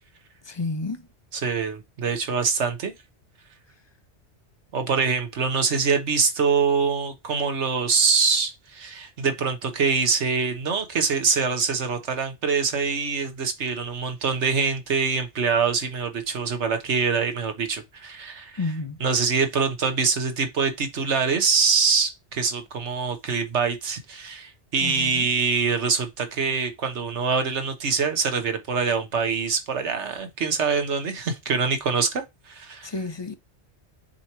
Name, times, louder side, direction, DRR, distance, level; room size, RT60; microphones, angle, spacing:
voice 1, 0.5-1.0 18.6-19.0 24.8-25.3 32.8-33.3, left 3 dB, 30° left, 0.6 m, -30 dB
voice 2, 1.3-2.9 4.7-18.6 19.0-32.9, right 5 dB, 80° right, 1.4 m, -24 dB
6.8 x 3.0 x 4.5 m
omnidirectional pair, 1.2 m